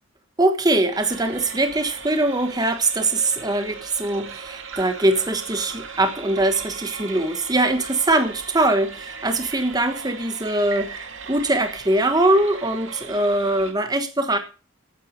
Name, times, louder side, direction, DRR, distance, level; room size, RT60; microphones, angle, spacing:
voice 1, 0.4-11.0 11.3-14.4, right 2 dB, 20° right, 8 dB, 1.2 m, -22 dB
sound 1, 0.9-13.7, right 5 dB, 70° right, 2.0 m, -38 dB
13.5 x 9.1 x 4.7 m, 0.34 s
head